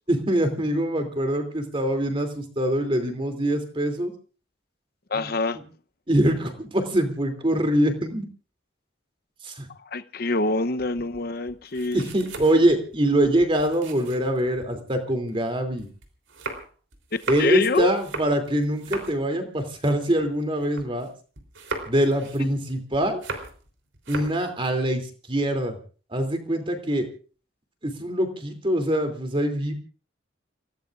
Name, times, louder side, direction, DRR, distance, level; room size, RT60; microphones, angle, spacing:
voice 1, 0.1-4.1 5.2-5.3 6.1-8.3 9.4-9.7 11.9-15.9 17.3-21.1 21.9-23.2 24.1-25.0 25.3-25.8 26.1-27.1 27.8-29.7, right 1 dB, 25° right, 2.9 m, -24 dB
voice 2, 5.1-5.6 9.8-12.0 17.4-17.9, left 3 dB, 50° left, 0.8 m, -25 dB
sound 1, 10.8-14.8 15.3-21.1 21.4-23.7 23.9-24.4, right 3 dB, 80° right, 3.6 m, -38 dB
29.5 x 16.5 x 2.5 m
head